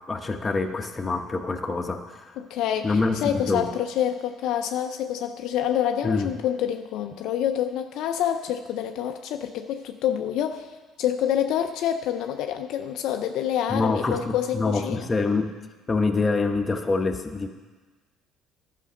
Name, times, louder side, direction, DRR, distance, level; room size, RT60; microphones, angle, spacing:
voice 1, 0.1-2.3 2.8-3.7 6.0-6.3 13.7-15.5 15.9-17.5, left 3 dB, 30° left, 5 dB, 0.9 m, -25 dB
voice 2, 2.4-15.1, left 10 dB, 70° left, 6 dB, 0.5 m, -27 dB
11.5 x 5.9 x 5.0 m, 1.3 s
supercardioid pair, 75°, 0 cm